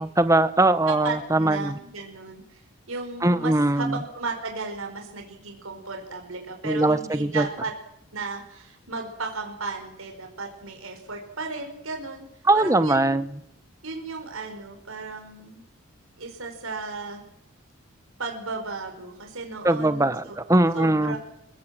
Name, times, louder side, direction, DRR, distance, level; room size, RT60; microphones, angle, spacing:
voice 1, 0.0-1.8 3.2-4.0 6.6-7.5 12.4-13.3 19.6-21.2, right 2 dB, 15° right, 12 dB, 1.0 m, -21 dB
voice 2, 0.9-2.6 2.9-7.7 8.1-12.3 12.5-13.2 13.8-15.6 16.2-17.2 18.2-20.4 20.7-21.2, right 3 dB, 80° right, 3 dB, 4.8 m, -35 dB
26.5 x 17.0 x 7.7 m, 0.80 s
head